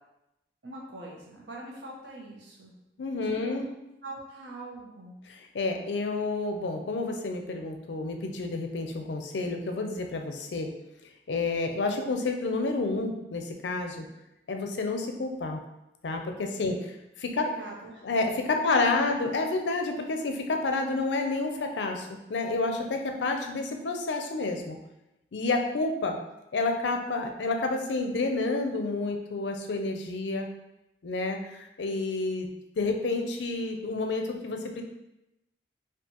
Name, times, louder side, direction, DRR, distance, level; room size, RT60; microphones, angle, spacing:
voice 1, 0.6-2.7 3.3-3.5 4.0-5.2 17.4-18.0 18.6-19.1, right 2 dB, 90° right, -2 dB, 1.0 m, -43 dB
voice 2, 3.0-3.7 5.5-10.7 11.3-14.1 14.5-15.6 16.0-17.5 18.0-24.8 25.3-26.2 26.5-30.5 31.0-32.5 32.8-34.8, left 3 dB, 85° left, 4 dB, 0.5 m, -29 dB
4.5 x 2.4 x 2.9 m, 0.91 s
head